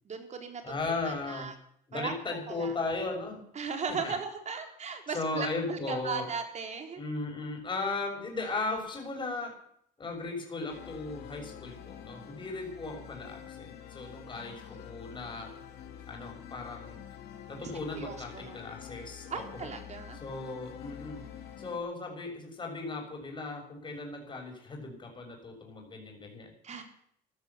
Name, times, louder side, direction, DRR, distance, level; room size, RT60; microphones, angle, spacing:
voice 1, 0.0-0.6 1.1-1.5 1.9-2.1 2.5-2.7 3.6-7.0 14.8-14.9 17.6-18.6 19.3-20.2 26.6-26.8, right 5 dB, 40° right, 5 dB, 3.9 m, -37 dB
voice 2, 0.6-1.5 1.9-3.4 3.9-4.2 5.1-6.3 7.0-9.5 10.0-15.5 16.1-17.0 17.5-19.7 20.1-21.2 21.6-26.5, left 3 dB, 30° left, 1 dB, 6.4 m, -37 dB
sound 1, 10.7-21.8, left 9 dB, 70° left, 3.2 m, -47 dB
15.5 x 12.5 x 7.2 m, 0.68 s
cardioid pair, 110°, 17 cm